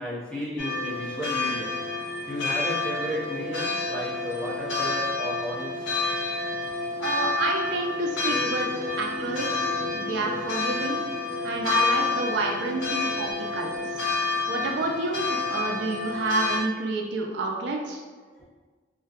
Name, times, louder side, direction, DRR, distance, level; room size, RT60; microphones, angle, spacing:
voice 1, 0.0-1.8 2.3-5.9 18.3-18.4, equal, 5° left, -10 dB, 0.7 m, -33 dB
sound 1, 0.6-16.6, left 3 dB, 85° left, 0.4 m, -29 dB
sound 2, 1.5-14.2, left 2 dB, 45° left, 1.0 m, -41 dB
voice 2, 7.0-8.7 9.0-11.0 11.4-13.9 14.5-18.0, right 2 dB, 75° right, 1 dB, 0.3 m, -29 dB
sound 3, 8.3-14.9, left 2 dB, 65° left, 0.8 m, -40 dB
2.5 x 2.2 x 2.3 m, 1.4 s
head